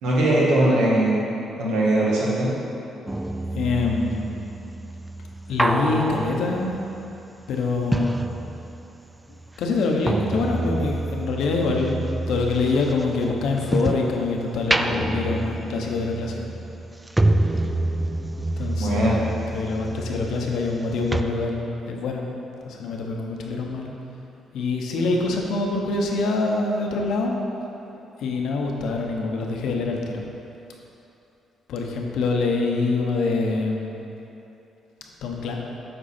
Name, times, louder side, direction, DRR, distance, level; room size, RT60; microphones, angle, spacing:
voice 1, 0.0-1.2 1.6-2.5 18.8-19.2, right 1 dB, 90° right, -6 dB, 1.6 m, -20 dB
sound 1, 3.1-9.0 9.3-14.2 14.6-20.8 21.1-21.2, right 1 dB, 15° right, 0.3 m, -27 dB
voice 2, 3.5-4.4 5.5-6.8 7.5-8.1 9.6-16.5 18.6-22.3 22.6-23.9 24.5-27.3 28.2-30.2 31.7-34.0 35.2-35.6, left 3 dB, 80° left, 1 dB, 0.9 m, -25 dB
7.9 x 4.6 x 4.3 m, 2.9 s
cardioid pair, 90°, 0 cm